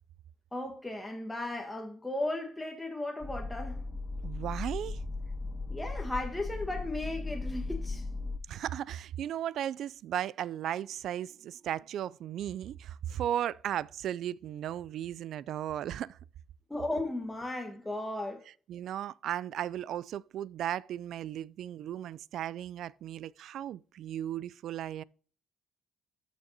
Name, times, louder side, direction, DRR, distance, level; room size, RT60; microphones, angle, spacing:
voice 1, 0.5-3.8 5.7-8.0 16.7-18.4, left 2 dB, 10° left, 1.4 m, -36 dB
sound 1, 3.2-8.4, left 3 dB, 40° left, 0.8 m, -37 dB
voice 2, 4.2-5.0 8.5-16.2 18.7-25.0, right 11 dB, 75° right, 0.3 m, -36 dB
13.5 x 6.2 x 2.7 m
cardioid pair, 90°, 0 cm